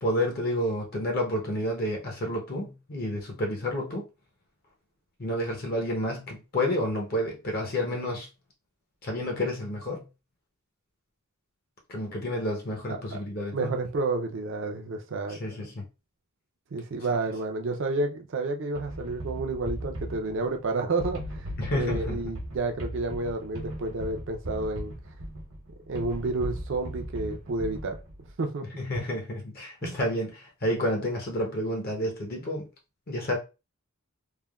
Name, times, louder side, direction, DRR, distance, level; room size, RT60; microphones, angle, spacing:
voice 1, 0.0-4.0 5.2-8.3 9.0-10.0 11.9-13.7 15.3-15.8 21.6-22.3 28.8-32.7 33.1-33.4, left 1 dB, 45° left, 0.6 m, -30 dB
voice 2, 12.9-13.2 13.5-15.7 16.7-24.9 25.9-28.0 28.4-28.7 29.8-30.0, right 3 dB, 55° right, 0.4 m, -30 dB
sound 1, 18.8-28.3, equal, 75° right, 1.0 m, -37 dB
3.3 x 2.1 x 2.2 m
head